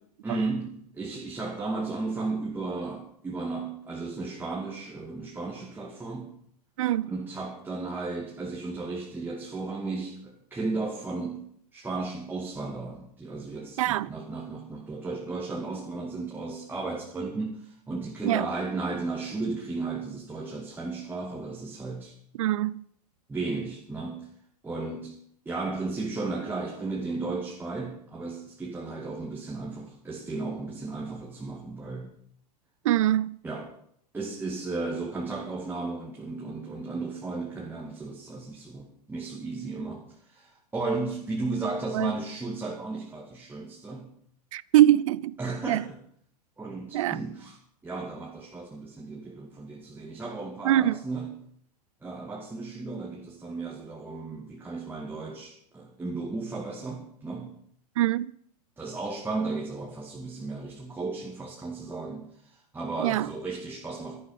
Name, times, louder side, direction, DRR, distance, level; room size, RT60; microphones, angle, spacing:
voice 1, 0.2-6.3 7.1-11.5 11.7-22.2 23.3-24.3 24.6-25.2 25.5-32.1 33.4-33.7 34.1-44.1 45.4-46.0 46.6-47.6 47.8-51.4 52.0-57.5 58.8-64.2, right 3 dB, 10° right, 2.3 m, -34 dB
voice 2, 6.8-7.1 13.8-14.1 18.2-18.5 22.4-22.8 32.8-33.4 41.9-42.1 44.5-45.3 45.7-45.8 46.9-47.2 50.6-51.0 58.0-58.3 63.0-63.3, right 13 dB, 50° right, 0.6 m, -23 dB
13.0 x 12.0 x 5.7 m
figure-of-eight pair, 90°, 21 cm